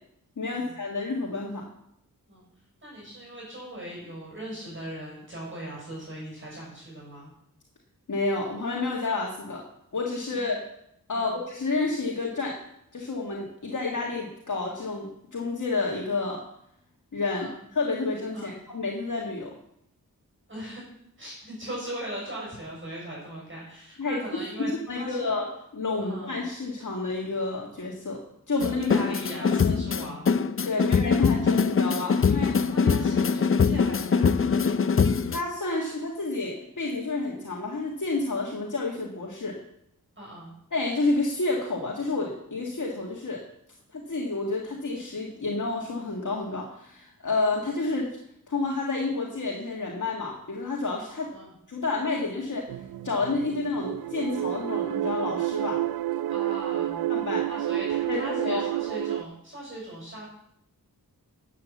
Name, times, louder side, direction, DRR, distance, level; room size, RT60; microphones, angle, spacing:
voice 1, 0.4-1.7 8.1-9.7 9.9-10.6 11.1-12.6 12.9-16.4 17.1-19.6 24.0-25.5 25.7-29.0 29.4-29.8 30.7-32.9 35.3-39.6 40.7-43.4 43.9-48.2 48.5-51.3 51.7-52.7 53.0-55.8 57.1-57.5 58.1-58.7, left 3 dB, 55° left, -2 dB, 1.9 m, -30 dB
voice 2, 2.8-7.3 10.3-10.5 11.1-11.4 17.3-17.6 18.3-18.6 20.5-20.8 21.2-25.3 26.0-26.4 28.8-30.3 30.8-30.9 32.7-34.9 40.2-40.5 51.3-51.5 56.3-57.0 57.5-60.3, right 1 dB, 35° right, -4 dB, 6.6 m, -39 dB
sound 1, 28.6-35.4, left 5 dB, 35° left, 0.5 m, -23 dB
sound 2, 52.7-59.2, right 13 dB, 80° right, 0.5 m, -29 dB
11.5 x 7.7 x 7.3 m, 0.75 s
wide cardioid pair, 105°, 36 cm